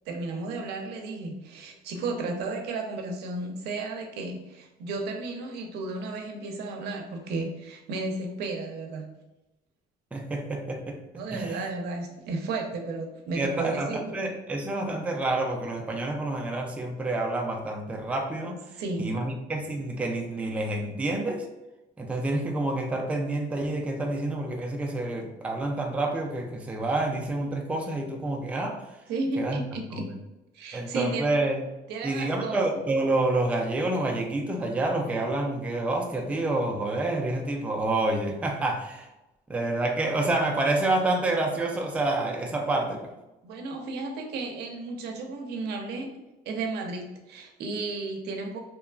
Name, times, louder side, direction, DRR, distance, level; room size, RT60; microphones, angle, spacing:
voice 1, 0.1-9.1 11.1-14.1 18.8-19.3 29.1-30.1 30.5-31.3 31.9-32.6 43.4-46.1 46.5-48.6, right 3 dB, 80° right, 2 dB, 0.5 m, -33 dB
voice 2, 10.1-11.0 11.3-11.7 13.3-18.6 19.0-21.5 22.0-28.8 29.4-29.6 29.9-30.0 30.7-31.6 32.0-39.1 39.5-43.1, right 2 dB, 10° right, 2 dB, 0.3 m, -28 dB
2.8 x 2.3 x 2.3 m, 0.98 s
cardioid pair, 110°, 17 cm